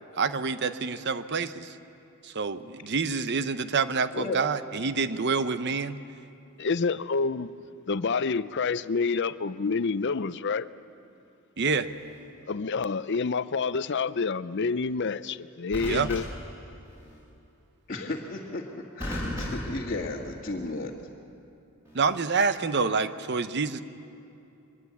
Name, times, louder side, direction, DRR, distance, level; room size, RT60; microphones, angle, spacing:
voice 1, 0.1-1.8 2.2-6.0 11.6-11.9 15.8-16.1 21.9-23.8, right 4 dB, 50° right, 0.8 m, -27 dB
voice 2, 6.6-7.5 7.9-10.7 12.5-16.2, left 4 dB, 55° left, 0.5 m, -28 dB
sound 1, 11.8-12.2 15.7-17.2 19.0-20.7 21.9-22.2, equal, 10° right, 7.9 m, -37 dB
voice 3, 17.9-20.9, left 2 dB, 40° left, 1.9 m, -34 dB
24.5 x 21.0 x 8.4 m
head